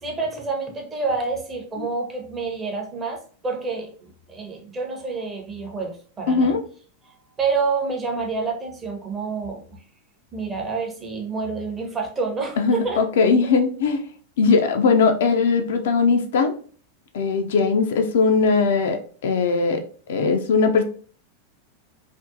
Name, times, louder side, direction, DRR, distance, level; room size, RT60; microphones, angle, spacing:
voice 1, 0.0-6.5 7.0-9.8 10.3-13.0, right 4 dB, 20° right, 1 dB, 0.6 m, -28 dB
voice 2, 6.3-6.6 12.6-14.0 14.4-16.5 17.1-19.8 20.1-20.8, left 4 dB, 60° left, 5 dB, 0.3 m, -19 dB
2.5 x 2.1 x 2.5 m, 0.44 s
figure-of-eight pair, 90°, 0 cm